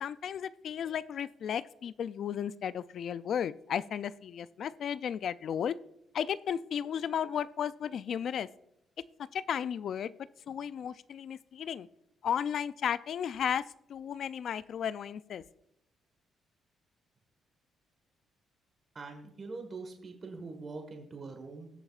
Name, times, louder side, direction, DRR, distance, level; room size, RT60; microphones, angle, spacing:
voice 1, 0.0-5.7 6.1-8.5 9.3-10.1 10.5-11.9 12.2-13.6 13.9-15.4, left 8 dB, 65° left, 16 dB, 0.3 m, -34 dB
voice 2, 18.9-21.7, right 3 dB, 40° right, 5 dB, 1.5 m, -43 dB
19.5 x 7.0 x 2.4 m, 0.82 s
cardioid pair, 90°, 0 cm